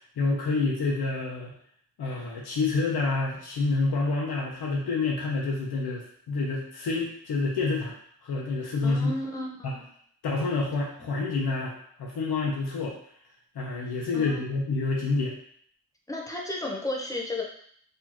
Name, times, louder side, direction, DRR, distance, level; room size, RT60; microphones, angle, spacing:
voice 1, 0.0-1.5 2.0-8.0 8.2-9.1 9.6-9.7 10.2-11.7 12.0-12.9 13.5-15.3, left 3 dB, 90° left, -2 dB, 0.9 m, -28 dB
voice 2, 8.8-9.9 14.1-14.4 16.1-17.4, left 2 dB, 10° left, -2 dB, 0.7 m, -33 dB
4.2 x 2.9 x 2.9 m, 0.62 s
wide cardioid pair, 120°, 38 cm